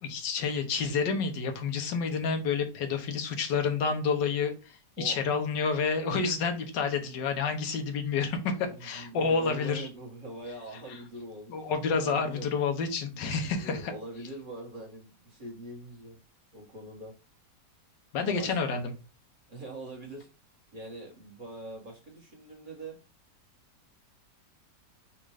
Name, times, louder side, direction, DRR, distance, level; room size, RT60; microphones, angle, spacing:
voice 1, 0.0-4.5 5.0-9.9 11.5-13.9 18.1-18.9, left 5 dB, 90° left, 1.5 m, -29 dB
voice 2, 8.6-11.7 12.0-12.5 13.1-16.2 16.5-17.1 18.2-18.6 19.5-20.3 20.7-23.0, right 1 dB, 30° right, 1.3 m, -43 dB
4.3 x 2.5 x 4.8 m
omnidirectional pair, 1.8 m